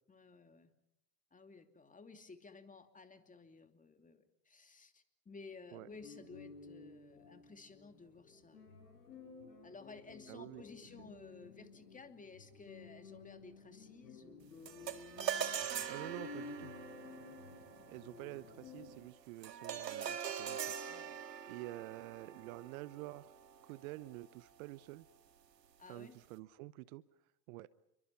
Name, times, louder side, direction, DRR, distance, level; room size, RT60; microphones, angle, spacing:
voice 1, 0.1-0.7 1.3-8.8 9.6-14.5 17.0-17.2 20.9-21.2 25.8-26.2, left 4 dB, 15° left, 7 dB, 2.8 m, -55 dB
sound 1, 5.9-19.0, left 4 dB, 80° left, 7.2 m, -54 dB
voice 2, 10.3-10.6 11.0-11.1 15.9-16.7 17.9-20.7 21.5-23.3 23.6-25.1 25.9-27.0 27.5-27.7, right 18 dB, 60° right, 18 dB, 1.0 m, -48 dB
sound 2, 14.7-24.1, right 8 dB, 90° right, 1.8 m, -43 dB
29.0 x 23.5 x 5.9 m, 0.83 s
hypercardioid pair, 90°, 48 cm